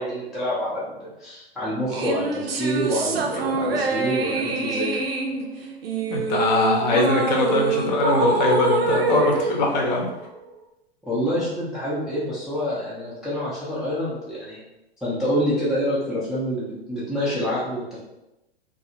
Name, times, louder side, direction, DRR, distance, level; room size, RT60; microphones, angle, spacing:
voice 1, 0.0-5.0 11.0-14.6 15.0-18.0, equal, ahead, -9 dB, 0.3 m, -27 dB
sound 1, 1.9-10.5, right 4 dB, 70° right, 0.5 m, -25 dB
voice 2, 6.1-10.1, left 2 dB, 45° left, 1 dB, 0.6 m, -21 dB
2.6 x 2.4 x 2.6 m, 0.94 s
figure-of-eight pair, 105°, 31 cm